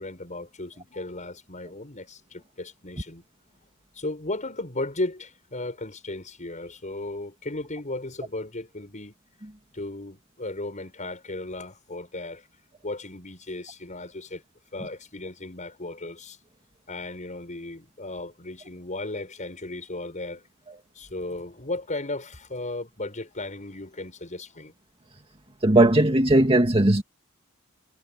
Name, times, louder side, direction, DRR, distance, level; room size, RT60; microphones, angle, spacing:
voice 1, 0.0-3.2 3.9-9.1 9.7-12.5 12.8-14.4 14.7-16.4 16.9-20.5 20.9-24.7, left 2 dB, 35° left, 6.2 m, -35 dB
voice 2, 25.6-27.0, right 1 dB, 25° right, 2.0 m, -18 dB
head